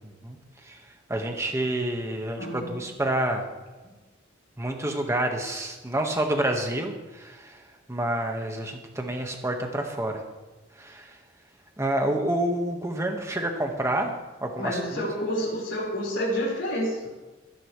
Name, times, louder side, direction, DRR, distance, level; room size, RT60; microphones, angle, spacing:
voice 1, 1.1-3.5 4.6-7.6 7.9-10.2 10.8-11.2 11.8-14.1 14.4-15.1, right 1 dB, 15° right, 3 dB, 1.5 m, -28 dB
voice 2, 2.3-2.8 14.6-17.1, equal, 65° left, -3 dB, 4.8 m, -29 dB
21.5 x 10.5 x 3.3 m, 1.2 s
head